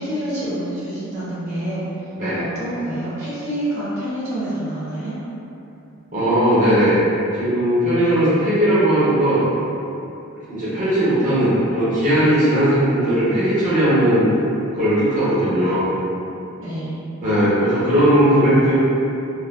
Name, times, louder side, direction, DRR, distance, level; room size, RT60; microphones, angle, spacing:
voice 1, 0.0-1.8 2.4-5.1 16.6-17.0 18.3-18.6, right 1 dB, 80° right, -11 dB, 1.1 m, -27 dB
voice 2, 6.1-6.9 7.3-9.4 10.5-14.3 14.8-15.9 17.2-18.7, right 1 dB, 35° right, -13 dB, 0.8 m, -17 dB
3.1 x 2.3 x 2.2 m, 2.8 s
head